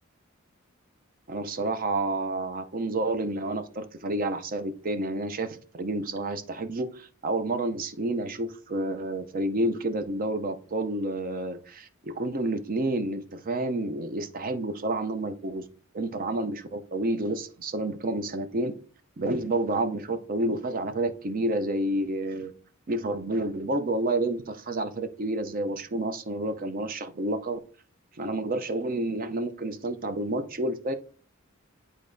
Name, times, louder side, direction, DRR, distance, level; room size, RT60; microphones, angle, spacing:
voice 1, 1.3-15.7 15.9-18.7 19.2-22.5 22.9-27.6 28.2-30.9, right 2 dB, 45° right, 10 dB, 0.6 m, -29 dB
10.0 x 3.9 x 2.6 m, 0.42 s
head